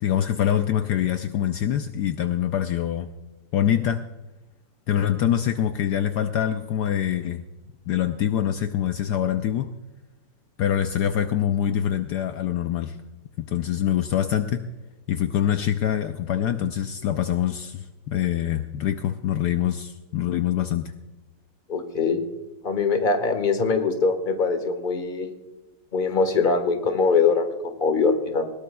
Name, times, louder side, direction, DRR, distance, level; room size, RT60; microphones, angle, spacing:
voice 1, 0.0-3.1 3.5-4.0 4.9-7.4 7.9-9.7 10.6-13.0 13.4-14.7 15.1-20.9, left 10 dB, 70° left, 8 dB, 1.1 m, -24 dB
voice 2, 21.7-22.2 22.6-25.3 25.9-28.5, left 4 dB, 30° left, 7 dB, 1.4 m, -22 dB
20.5 x 18.0 x 2.3 m, 1.1 s
omnidirectional pair, 1.9 m